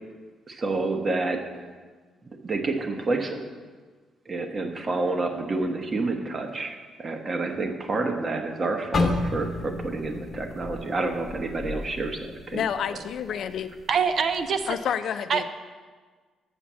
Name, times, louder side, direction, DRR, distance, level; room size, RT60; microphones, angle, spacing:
voice 1, 0.5-1.4 2.2-3.4 4.3-12.6, right 3 dB, 35° right, 4 dB, 1.1 m, -29 dB
sound 1, 8.9-13.0 13.3-13.6 14.2-14.6, left 3 dB, 40° left, 1.1 m, -31 dB
voice 2, 12.5-13.7 14.7-15.4, left 8 dB, 70° left, 10 dB, 0.4 m, -29 dB
voice 3, 13.9-14.8 15.3-15.4, right 6 dB, 55° right, 9 dB, 0.6 m, -24 dB
7.2 x 5.8 x 7.3 m, 1.5 s
cardioid pair, 90°, 0 cm